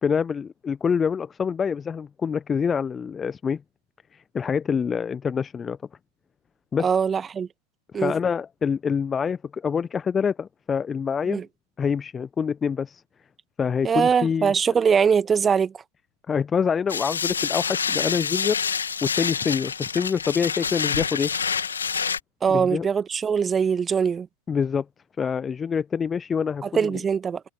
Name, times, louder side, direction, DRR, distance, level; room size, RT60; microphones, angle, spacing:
voice 1, 0.0-3.6 4.1-5.8 6.7-6.9 8.0-11.4 11.8-13.0 13.6-14.5 16.3-18.6 19.0-21.3 22.5-22.9 24.5-24.8 25.2-27.0, left 6 dB, 20° left, 1.1 m, -26 dB
voice 2, 6.8-7.5 7.9-8.1 11.3-11.4 13.8-15.7 22.4-24.3 26.6-27.4, right 6 dB, 20° right, 1.5 m, -22 dB
sound 1, 16.9-22.2, left 6 dB, 70° left, 2.4 m, -27 dB
figure-of-eight pair, 90°, 0 cm